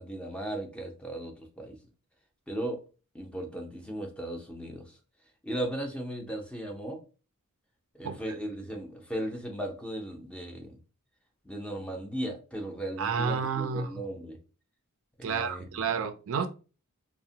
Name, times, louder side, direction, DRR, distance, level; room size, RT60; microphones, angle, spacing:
voice 1, 0.0-1.8 2.5-2.8 3.1-4.8 5.4-7.0 8.0-10.8 11.5-14.4 15.2-15.7, right 1 dB, 5° left, 0.5 m, -36 dB
voice 2, 8.0-8.4 13.0-14.0 15.2-16.5, right 6 dB, 65° right, 0.3 m, -30 dB
2.8 x 2.1 x 2.7 m
head